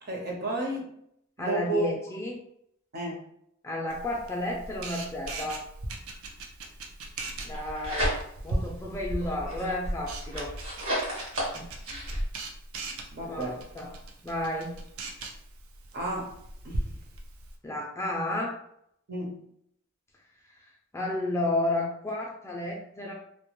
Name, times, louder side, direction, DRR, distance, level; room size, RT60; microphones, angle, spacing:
voice 1, 0.0-0.9 1.4-1.9 2.9-3.3 13.1-13.6 15.9-16.3 16.6-16.9 19.1-19.4, right 1 dB, 50° right, -1 dB, 0.7 m, -32 dB
voice 2, 1.4-2.4 3.6-5.6 7.4-8.1 8.4-10.5 11.5-11.7 13.3-13.9 14.2-14.7 17.6-18.5 20.9-23.1, left 1 dB, 15° left, -1 dB, 0.3 m, -32 dB
Camera, 3.9-17.5, right 1 dB, 90° right, 0.4 m, -39 dB
sound 1, 7.4-8.6 9.0-12.3, equal, 70° right, 1.0 m, -32 dB
2.2 x 2.1 x 2.9 m, 0.72 s
head